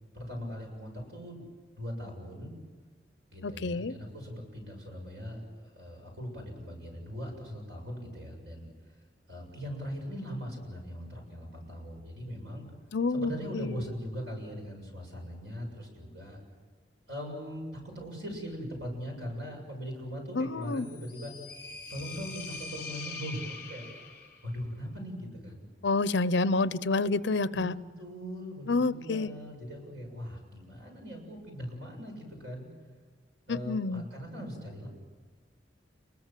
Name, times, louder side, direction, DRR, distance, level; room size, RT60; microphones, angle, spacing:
voice 1, 0.1-1.5 1.7-2.5 3.3-8.7 9.0-12.6 13.1-16.4 17.1-21.3 21.9-23.8 24.4-25.7 27.5-27.6 28.0-32.7 33.5-34.9, equal, 65° right, 1 dB, 7.3 m, -40 dB
voice 2, 3.4-3.9 12.9-13.7 20.3-20.9 25.8-27.7 28.7-29.3 33.5-34.0, left 3 dB, 70° left, 16 dB, 0.7 m, -28 dB
sound 1, 20.7-24.4, left 3 dB, 50° left, 5.0 m, -43 dB
29.5 x 21.5 x 7.6 m, 1.5 s
head